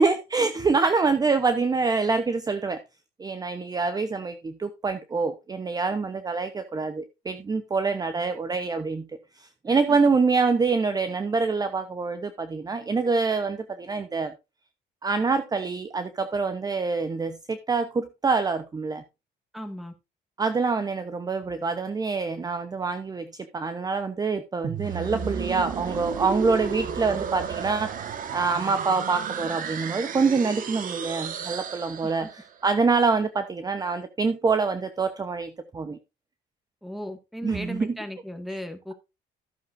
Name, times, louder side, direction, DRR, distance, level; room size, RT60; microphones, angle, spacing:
voice 1, 0.0-2.8 3.2-9.1 9.4-14.3 15.0-19.0 20.4-23.3 23.5-27.9 28.3-32.3 32.6-36.0 37.4-37.9, right 4 dB, 20° right, 0.8 m, -25 dB
voice 2, 19.5-19.9 32.0-32.3 36.8-38.9, equal, ahead, 1.8 m, -37 dB
sound 1, 24.6-32.5, right 7 dB, 55° right, 1.5 m, -33 dB
14.0 x 7.4 x 2.6 m
cardioid pair, 110°, 17 cm